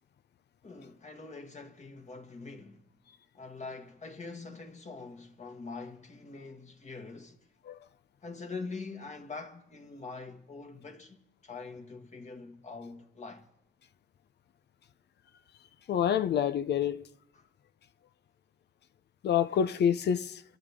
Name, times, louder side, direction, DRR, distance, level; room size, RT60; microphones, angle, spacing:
voice 1, 0.6-2.9 3.3-7.5 8.2-13.5 17.3-17.5, left 4 dB, 35° left, 1.8 m, -44 dB
voice 2, 15.9-17.1 19.2-20.4, left 8 dB, 60° left, 0.6 m, -27 dB
27.0 x 14.0 x 3.7 m
cardioid pair, 90°, 20 cm